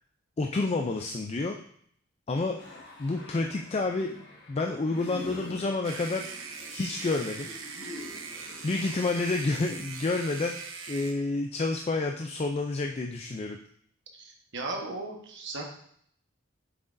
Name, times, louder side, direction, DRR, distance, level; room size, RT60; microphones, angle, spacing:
voice 1, 0.4-1.6 2.3-2.6 3.0-4.1 4.5-6.3 6.7-7.5 8.6-10.6 10.9-13.6, left 3 dB, 30° left, 3 dB, 0.4 m, -29 dB
sound 1, 2.6-8.9, left 1 dB, 60° left, 1.6 m, -45 dB
sound 2, 5.8-11.1, right 5 dB, 75° right, 0.9 m, -41 dB
voice 2, 14.1-15.6, right 2 dB, 60° right, 1 dB, 1.2 m, -36 dB
7.6 x 6.0 x 2.6 m, 0.65 s
head